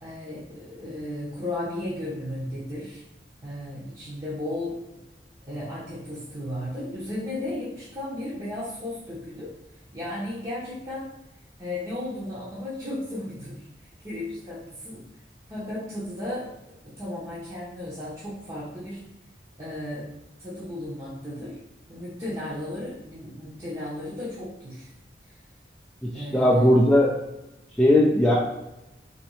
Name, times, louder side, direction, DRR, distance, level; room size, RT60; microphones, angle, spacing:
voice 1, 0.0-3.0 3.4-4.8 5.5-9.5 9.9-11.1 11.6-13.6 14.0-15.0 15.5-16.5 16.8-19.0 19.6-20.1 20.4-21.6 21.9-24.9 26.1-26.8, left 1 dB, 25° right, -9 dB, 0.8 m, -34 dB
voice 2, 26.1-27.1 27.8-28.4, left 1 dB, 5° left, -5 dB, 0.3 m, -18 dB
4.0 x 2.9 x 3.1 m, 0.93 s
head